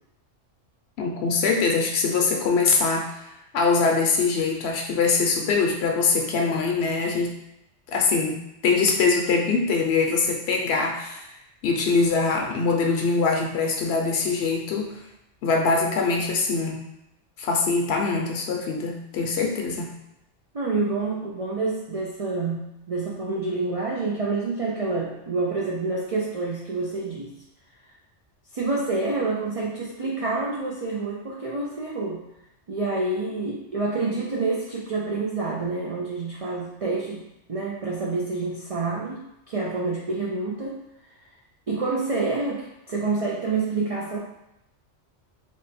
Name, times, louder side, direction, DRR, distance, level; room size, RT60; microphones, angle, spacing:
voice 1, 1.0-3.2 3.5-7.3 7.9-8.4 8.6-11.3 11.6-15.0 15.4-16.8 17.4-19.9, left 4 dB, 65° left, 1 dB, 0.8 m, -23 dB
voice 2, 20.5-27.3 28.5-32.2 32.7-37.2 37.5-40.8 41.7-44.2, right 3 dB, 65° right, -3 dB, 0.3 m, -28 dB
3.3 x 2.2 x 4.0 m, 0.86 s
omnidirectional pair, 1.2 m